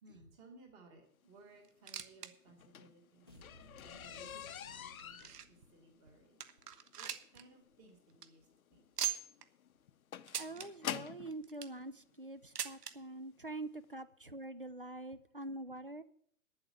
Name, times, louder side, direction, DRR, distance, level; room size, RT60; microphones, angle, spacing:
voice 1, 0.0-6.4 6.9-8.9, right 2 dB, 10° right, 3 dB, 1.1 m, -61 dB
sound 1, 1.6-2.3 2.6-2.7 3.4-3.5 4.2-5.7 6.1-6.2 6.4-7.4 7.7-7.8 8.1-8.3 9.0-9.5 10.3-10.7 11.3-11.8 12.6-12.9 13.9-14.0 14.2-14.3 15.1-15.2, right 9 dB, 75° right, 1.4 m, -41 dB
sound 2, 2.5-11.4 12.3-12.4 12.9-13.1 13.4-13.5 13.8-13.9, left 9 dB, 60° left, 0.8 m, -47 dB
sound 3, 3.3-6.0, left 1 dB, 15° left, 0.6 m, -59 dB
voice 2, 10.3-16.0, right 2 dB, 40° right, 14 dB, 0.4 m, -45 dB
10.5 x 7.8 x 8.6 m, 0.63 s
hypercardioid pair, 170°, 47 cm